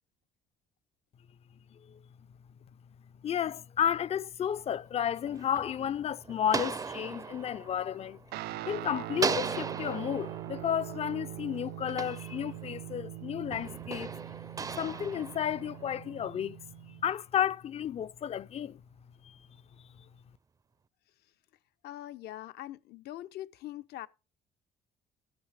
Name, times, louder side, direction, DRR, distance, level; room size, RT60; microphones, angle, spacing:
voice 1, 3.2-8.2 8.7-14.1 14.8-16.6 17.0-18.8 19.2-19.4, left 9 dB, 40° left, 0.4 m, -32 dB
sound 1, 5.0-8.7 9.1-12.9 13.5-16.2, right 5 dB, 20° right, 0.4 m, -38 dB
Guitar, 8.3-17.1, right 16 dB, 75° right, 0.4 m, -42 dB
voice 2, 21.8-24.1, left 14 dB, 75° left, 0.7 m, -42 dB
13.0 x 5.7 x 4.8 m
cardioid pair, 110°, 17 cm